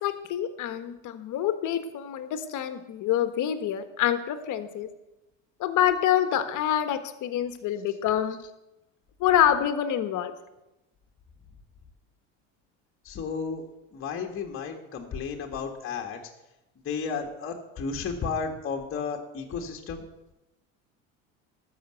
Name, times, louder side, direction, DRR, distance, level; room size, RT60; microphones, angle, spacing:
voice 1, 0.0-4.9 5.6-8.4 9.2-10.3, left 10 dB, 50° left, 10 dB, 1.4 m, -26 dB
voice 2, 13.1-13.6 13.9-16.2 16.9-20.0, left 5 dB, 35° left, 2 dB, 1.9 m, -33 dB
13.0 x 6.2 x 7.9 m, 0.96 s
hypercardioid pair, 85°, 39 cm